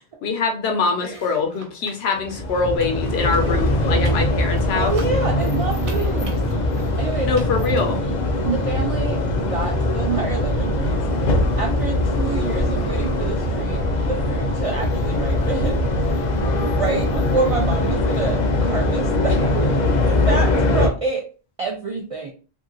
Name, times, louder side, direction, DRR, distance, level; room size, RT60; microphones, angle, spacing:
voice 1, 0.2-4.9 7.2-8.0, left 4 dB, 80° left, 3 dB, 0.9 m, -23 dB
voice 2, 1.0-1.5 4.7-6.4 7.0-7.6 8.4-16.2 16.6-19.7 20.0-21.2 21.6-22.3, right 4 dB, 60° right, 0 dB, 0.3 m, -28 dB
sound 1, 1.0-7.9, right 3 dB, 80° right, 1.0 m, -44 dB
sound 2, 2.2-20.9, left 1 dB, 55° left, 0.6 m, -21 dB
2.7 x 2.7 x 2.6 m, 0.36 s
omnidirectional pair, 1.1 m